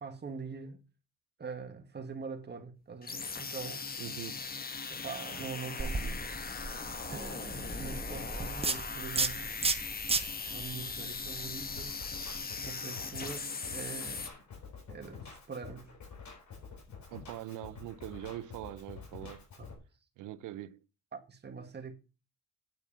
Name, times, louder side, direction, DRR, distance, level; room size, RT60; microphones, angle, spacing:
voice 1, 0.0-0.8 1.4-3.9 4.9-6.2 7.1-9.5 10.5-12.0 12.6-14.4 14.9-15.9 19.6-19.7 21.1-21.9, right 5 dB, 35° right, 1.9 m, -43 dB
sound 1, 3.0-14.3, left 4 dB, 30° left, 1.2 m, -39 dB
voice 2, 4.0-4.4 17.1-19.5 20.2-20.9, right 13 dB, 90° right, 0.7 m, -43 dB
sound 2, 5.8-12.4, right 4 dB, 20° right, 0.8 m, -36 dB
Drum kit, 11.8-19.8, left 5 dB, 65° left, 4.1 m, -49 dB
9.7 x 4.5 x 6.9 m
cardioid pair, 90°, 30 cm